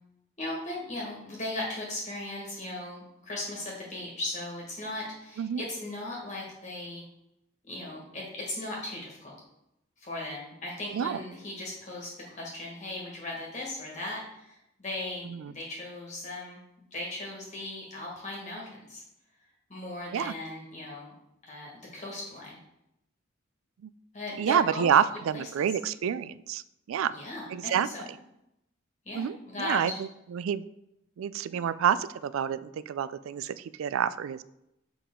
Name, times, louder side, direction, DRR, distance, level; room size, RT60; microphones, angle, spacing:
voice 1, 0.4-7.0 7.7-9.3 10.0-16.6 16.9-19.0 19.7-21.1 21.4-22.6 24.1-24.9 25.3-25.4 27.1-28.1 29.0-29.8 31.5-31.6, left 1 dB, 35° left, -3 dB, 1.5 m, -38 dB
voice 2, 24.4-26.6 26.9-27.1 27.5-27.9 29.1-30.6 31.2-34.4, right 8 dB, 85° right, 17 dB, 0.3 m, -28 dB
6.9 x 5.2 x 3.7 m, 0.83 s
head